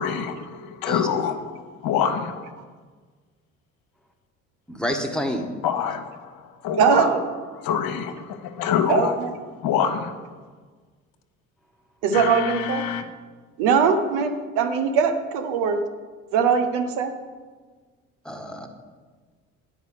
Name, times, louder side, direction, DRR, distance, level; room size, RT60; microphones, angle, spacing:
voice 1, 0.0-2.5 5.6-6.3 6.6-7.1 7.6-9.1 9.6-10.2 12.1-13.0, left 8 dB, 60° left, 8 dB, 1.0 m, -26 dB
voice 2, 4.7-5.5 18.2-18.7, equal, ahead, 4 dB, 1.4 m, -28 dB
voice 3, 6.8-7.3 8.9-9.3 12.0-12.9 13.6-15.8 16.3-17.1, right 6 dB, 70° right, 7 dB, 1.0 m, -21 dB
9.4 x 5.1 x 6.4 m, 1.5 s
hypercardioid pair, 55°, 40 cm